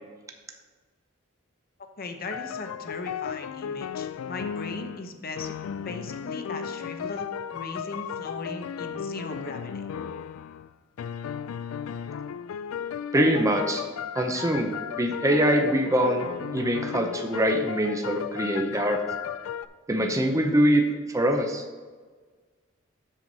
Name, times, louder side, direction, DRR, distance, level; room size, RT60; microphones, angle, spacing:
voice 1, 2.0-9.9, left 3 dB, 45° left, 6 dB, 0.8 m, -38 dB
sound 1, 2.2-5.1 5.4-10.7 11.0-19.7, left 7 dB, 85° left, 0.3 m, -35 dB
voice 2, 13.1-13.8 14.1-19.0 19.9-20.8 21.1-21.6, equal, 15° right, 3 dB, 0.7 m, -24 dB
7.5 x 7.1 x 4.0 m, 1.4 s
head